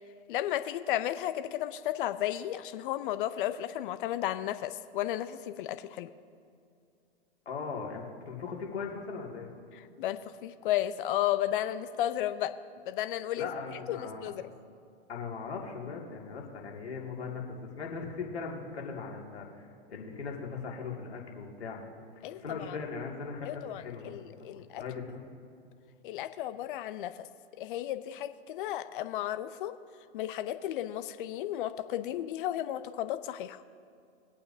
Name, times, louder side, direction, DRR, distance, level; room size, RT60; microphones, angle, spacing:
voice 1, 0.3-6.1 9.7-12.5 12.9-14.4 22.2-22.4 22.7-22.8 23.4-24.8 26.0-27.3 27.6-29.7 30.1-33.6, left 12 dB, 55° left, 12 dB, 0.6 m, -33 dB
voice 2, 7.5-9.5 13.4-14.3 15.1-21.8 22.3-24.3 24.8-25.3, left 5 dB, 80° left, -1 dB, 2.3 m, -39 dB
22.0 x 8.5 x 2.7 m, 2.4 s
hypercardioid pair, 110°, 32 cm